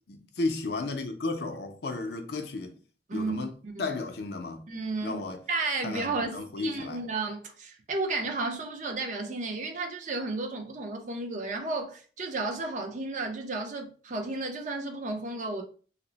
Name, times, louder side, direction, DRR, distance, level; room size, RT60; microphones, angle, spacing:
voice 1, 0.1-2.7 3.1-3.5 3.8-4.6 5.0-5.4 5.8-7.0, left 3 dB, 65° left, 0.5 m, -33 dB
voice 2, 3.1-3.9 4.7-5.2 5.5-15.6, right 3 dB, 45° right, 0.6 m, -33 dB
2.8 x 2.0 x 3.9 m
head